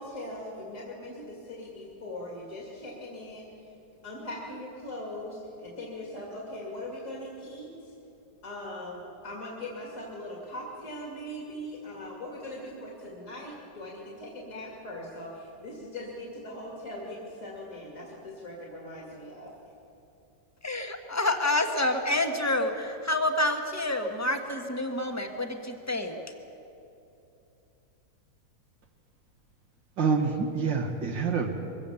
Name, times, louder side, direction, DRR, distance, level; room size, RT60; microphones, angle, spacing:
voice 1, 0.0-3.8 4.0-7.9 8.4-19.5, left 1 dB, 45° left, -2 dB, 2.9 m, -40 dB
voice 2, 20.6-26.2, left 2 dB, 10° left, 5 dB, 1.1 m, -28 dB
voice 3, 30.0-31.5, right 5 dB, 80° right, 2 dB, 2.1 m, -27 dB
22.5 x 16.5 x 7.1 m, 2.8 s
omnidirectional pair, 2.0 m